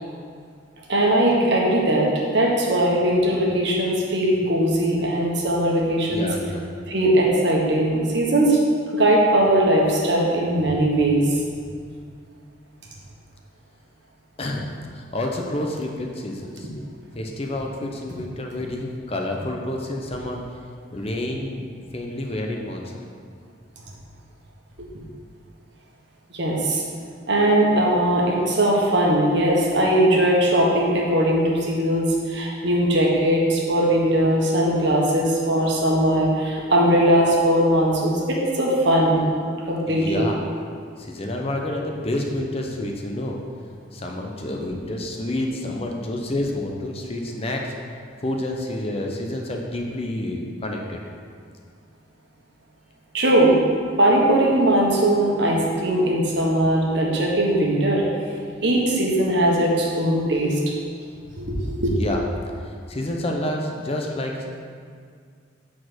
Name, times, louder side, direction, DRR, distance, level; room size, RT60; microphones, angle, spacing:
voice 1, 0.9-6.3 6.9-8.6 8.9-11.4 26.3-26.8 27.3-39.2 39.7-40.3 53.1-53.5 54.0-58.0 58.6-60.6 61.4-61.9, right 1 dB, 60° right, -2 dB, 1.3 m, -20 dB
voice 2, 6.1-6.6 14.4-14.7 14.9-16.7 17.1-20.4 20.9-23.0 39.9-40.4 40.9-47.7 48.2-51.0 62.0-62.2 62.6-64.5, left 1 dB, 30° left, 1 dB, 0.7 m, -29 dB
7.3 x 4.3 x 6.1 m, 2.1 s
head